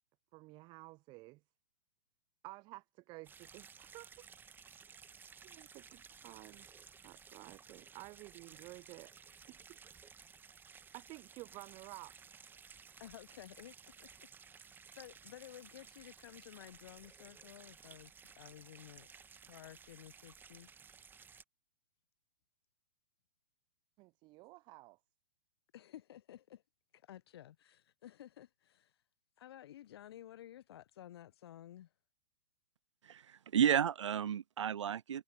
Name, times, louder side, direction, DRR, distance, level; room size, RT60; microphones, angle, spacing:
voice 1, 0.3-1.4 2.4-4.3 5.4-6.6 7.0-9.1 9.5-9.6 10.9-12.2 24.0-25.0, right 22 dB, 30° right, 0.9 m, -52 dB
sound 1, 3.2-21.4, right 6 dB, 10° right, 1.5 m, -57 dB
voice 2, 13.0-13.8 14.5-18.1 18.4-19.1 19.5-20.8 25.7-26.6 26.9-29.0 29.4-31.9, left 12 dB, 55° left, 1.0 m, -54 dB
voice 3, 33.1-35.2, right 9 dB, 70° right, 0.4 m, -32 dB
figure-of-eight pair, 110°, 16 cm